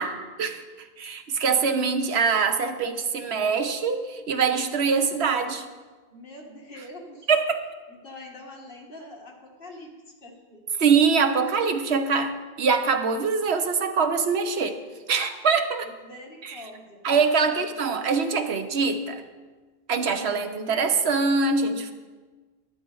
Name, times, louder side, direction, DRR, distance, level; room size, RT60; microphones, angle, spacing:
voice 1, 0.0-5.7 7.3-7.7 10.8-14.8 15.1-15.9 16.4-16.6 17.0-19.2 19.9-21.9, right 5 dB, 85° right, 7 dB, 1.1 m, -24 dB
voice 2, 6.1-7.3 7.9-10.0 10.2-10.9 15.8-17.0 17.5-17.6, left 1 dB, 60° left, 0 dB, 1.8 m, -44 dB
12.0 x 10.5 x 3.9 m, 1.4 s
omnidirectional pair, 1.1 m